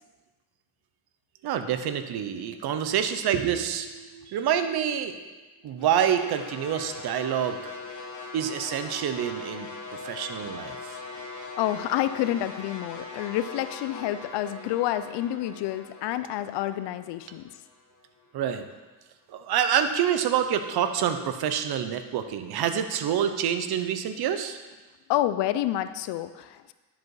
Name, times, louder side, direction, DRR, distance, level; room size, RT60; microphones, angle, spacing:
voice 1, 1.4-5.2 5.6-7.7 8.3-11.0 18.3-18.7 19.3-24.6, right 9 dB, 70° right, 9 dB, 0.8 m, -27 dB
sound 1, 5.8-18.0, left 3 dB, 45° left, 1.6 m, -41 dB
voice 2, 11.6-17.4 25.1-26.7, left 13 dB, 85° left, 12 dB, 0.6 m, -28 dB
10.5 x 5.1 x 4.8 m, 1.2 s
cardioid pair, 85°, 40 cm